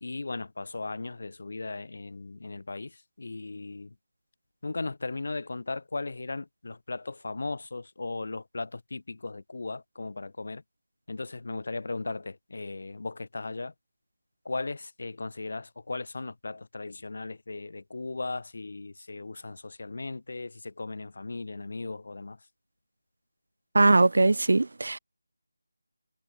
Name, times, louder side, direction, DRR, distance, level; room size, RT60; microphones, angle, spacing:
voice 1, 0.0-2.9 3.2-3.9 4.6-10.6 11.1-13.7 14.4-22.4, left 3 dB, 60° left, 2.9 m, -37 dB
voice 2, 23.7-25.0, right 2 dB, 65° right, 1.0 m, -21 dB
figure-of-eight pair, 165°, 0 cm